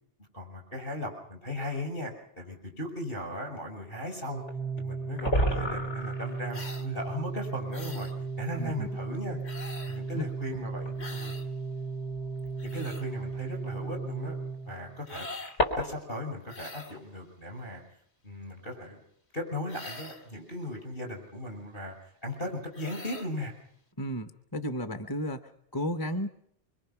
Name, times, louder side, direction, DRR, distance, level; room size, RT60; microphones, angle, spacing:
voice 1, 0.3-4.4 4.8-8.1 8.4-9.4 9.9-11.3 12.6-14.4 14.7-15.3 15.8-17.8 18.2-19.0 19.3-23.5, left 1 dB, 50° left, 2 dB, 7.1 m, -37 dB
sound 1, 1.9-2.0 4.5-4.6 4.8-4.9 5.1-6.5 7.9-8.0 8.8-8.9 10.8-11.1 12.4-12.5 14.5-16.2, equal, 80° left, 3.9 m, -30 dB
Organ, 4.3-15.2, right 4 dB, ahead, 0.6 m, -36 dB
sound 2, 6.5-6.9 7.7-8.2 9.4-10.0 11.0-11.5 12.4-13.0 15.0-15.6 16.5-17.0 19.7-20.3 22.7-23.3, left 2 dB, 65° left, 2.3 m, -43 dB
voice 2, 9.8-10.6 11.2-11.3 24.0-26.3, equal, 20° left, 8 dB, 0.9 m, -34 dB
25.5 x 24.5 x 5.9 m, 0.68 s
omnidirectional pair, 1.2 m